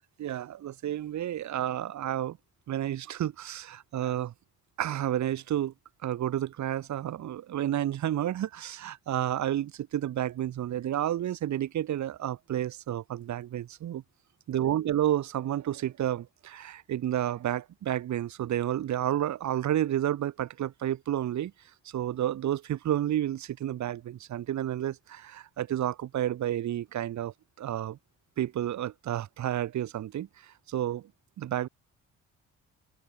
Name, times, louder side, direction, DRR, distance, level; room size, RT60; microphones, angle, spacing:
voice 1, 0.2-2.4 2.7-4.3 4.8-5.7 6.0-14.0 14.5-21.5 21.9-28.0 28.4-31.1 31.4-31.7, right 12 dB, 70° right, 2.0 m, -31 dB
open air
cardioid pair, 90°, 30 cm